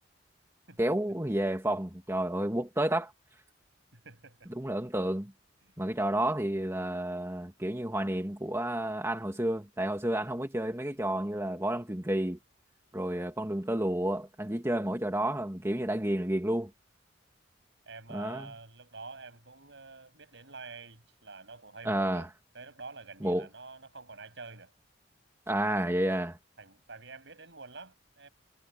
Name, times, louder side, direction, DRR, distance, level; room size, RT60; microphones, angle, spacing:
voice 1, 0.8-3.1 4.6-5.3 5.8-12.4 12.9-16.7 18.1-18.5 21.8-22.3 23.2-23.5 25.5-26.4, right 1 dB, 15° right, 2.0 m, -30 dB
voice 2, 3.9-4.5 5.6-5.7 17.9-24.7 26.6-28.3, right 3 dB, 70° right, 7.7 m, -48 dB
head